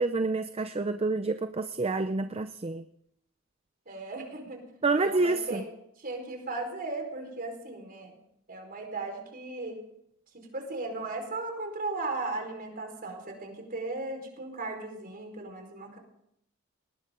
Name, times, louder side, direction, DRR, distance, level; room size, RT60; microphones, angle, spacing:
voice 1, 0.0-2.8 4.8-5.6, right 3 dB, 30° right, 10 dB, 0.6 m, -28 dB
voice 2, 3.9-4.6 5.0-5.7 6.0-8.2 8.5-9.8 10.3-16.0, right 3 dB, 45° right, 3 dB, 4.8 m, -36 dB
19.5 x 18.5 x 3.9 m, 0.76 s
head